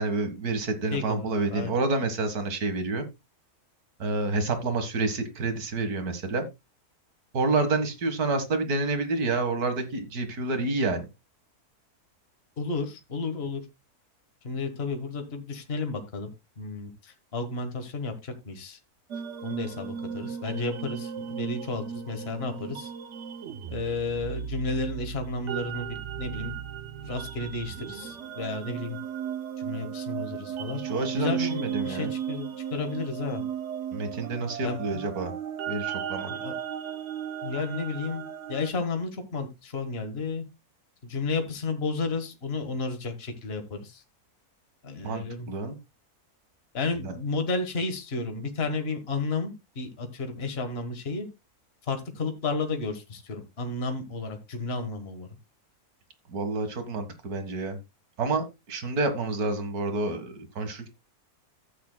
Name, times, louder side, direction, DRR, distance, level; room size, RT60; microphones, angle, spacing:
voice 1, 0.0-3.1 4.0-6.5 7.3-11.1 30.7-32.1 33.9-35.3 35.7-36.3 45.0-45.8 47.0-47.1 56.3-57.8 58.2-60.9, right 3 dB, 80° right, 8 dB, 2.1 m, -28 dB
voice 2, 0.9-1.7 12.6-13.6 14.4-16.3 16.6-18.8 19.4-22.9 23.7-26.6 27.0-29.0 29.6-30.8 31.2-33.4 34.6-35.0 36.3-36.5 37.4-38.2 38.5-40.4 41.0-44.0 44.8-45.5 46.7-51.3 51.9-55.3, left 3 dB, 45° left, 6 dB, 1.7 m, -32 dB
sound 1, 19.1-38.7, right 8 dB, 55° right, 0.9 m, -36 dB
14.0 x 8.5 x 2.2 m, 0.22 s
omnidirectional pair, 1.6 m